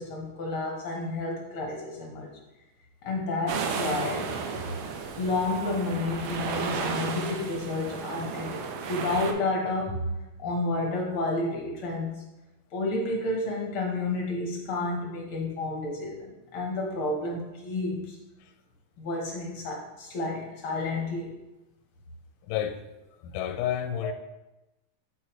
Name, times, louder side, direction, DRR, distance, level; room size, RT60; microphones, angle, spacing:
voice 1, 0.0-2.3 3.0-4.3 5.2-10.1 10.4-12.2 12.7-18.2 19.0-21.3, left 2 dB, 65° left, -1 dB, 1.3 m, -30 dB
sound 1, 3.5-9.3, right 5 dB, 90° right, 2.3 m, -33 dB
voice 2, 22.4-22.8 23.2-24.1, left 10 dB, 90° left, 7 dB, 2.2 m, -30 dB
9.3 x 4.7 x 3.0 m, 0.98 s
omnidirectional pair, 3.6 m